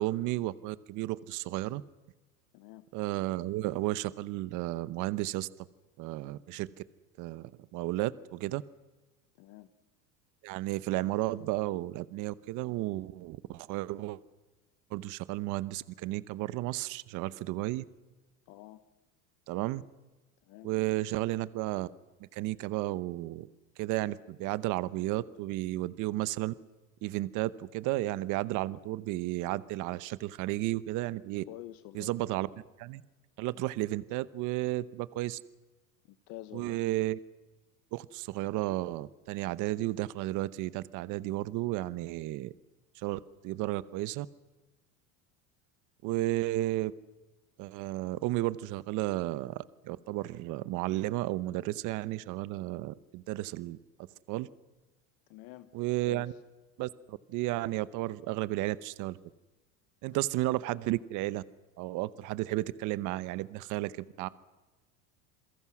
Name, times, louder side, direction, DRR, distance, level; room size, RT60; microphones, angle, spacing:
voice 1, 0.0-1.8 2.9-5.5 6.0-6.7 7.2-8.6 10.4-14.2 14.9-17.8 19.5-19.8 20.6-21.9 22.2-23.5 23.8-26.5 27.0-31.4 31.9-32.5 32.8-33.0 33.4-35.4 36.5-37.2 37.9-42.5 42.9-44.3 46.0-46.9 47.6-53.8 54.3-54.5 55.7-56.3 56.8-59.2 60.0-61.4 61.8-64.3, right 17 dB, 50° right, 17 dB, 0.9 m, -33 dB
voice 2, 2.5-2.8 9.4-9.7 18.5-18.8 20.5-20.7 31.5-32.1 33.5-33.6 36.1-36.8 55.3-55.7 56.0-56.4, left 16 dB, 60° left, 11 dB, 1.2 m, -47 dB
28.0 x 22.5 x 6.2 m, 1.2 s
supercardioid pair, 140°, 40 cm